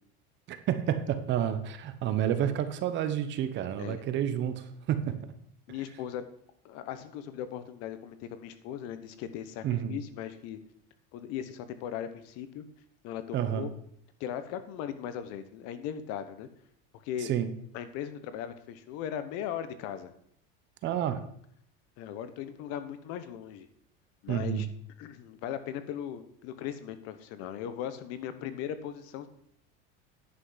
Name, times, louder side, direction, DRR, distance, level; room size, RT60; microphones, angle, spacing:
voice 1, 0.5-5.1 9.6-10.0 13.3-13.7 17.2-17.5 20.8-21.2 24.3-24.7, right 10 dB, 40° right, 10 dB, 1.0 m, -30 dB
voice 2, 5.7-6.3 6.6-10.6 11.1-12.6 13.0-13.7 14.2-16.5 17.0-17.3 17.7-20.1 22.0-23.7 24.2-24.7 25.0-29.3, left 10 dB, 60° left, 11 dB, 1.0 m, -38 dB
10.0 x 5.8 x 5.7 m, 0.67 s
cardioid pair, 155°, 29 cm